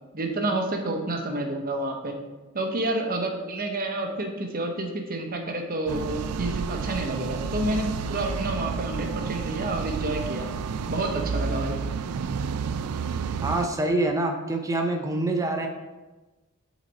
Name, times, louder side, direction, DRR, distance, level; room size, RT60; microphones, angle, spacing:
voice 1, 0.1-2.2 2.5-10.5 10.9-11.7, right 2 dB, 40° right, 3 dB, 0.9 m, -29 dB
sound 1, 5.9-13.7, right 5 dB, 90° right, 0.4 m, -30 dB
voice 2, 13.4-15.7, right 2 dB, 15° right, 3 dB, 0.6 m, -25 dB
7.9 x 4.1 x 4.1 m, 1.2 s
head